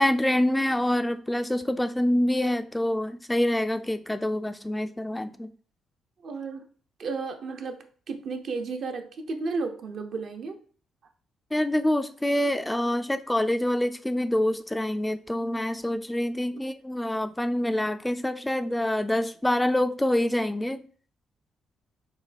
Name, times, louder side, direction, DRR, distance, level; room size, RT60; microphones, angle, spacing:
voice 1, 0.0-5.5 11.5-20.8, left 1 dB, 10° left, 0.3 m, -26 dB
voice 2, 6.2-6.7 7.0-10.6, right 4 dB, 60° right, 0.7 m, -33 dB
6.1 x 2.2 x 3.3 m
cardioid pair, 90°, 0 cm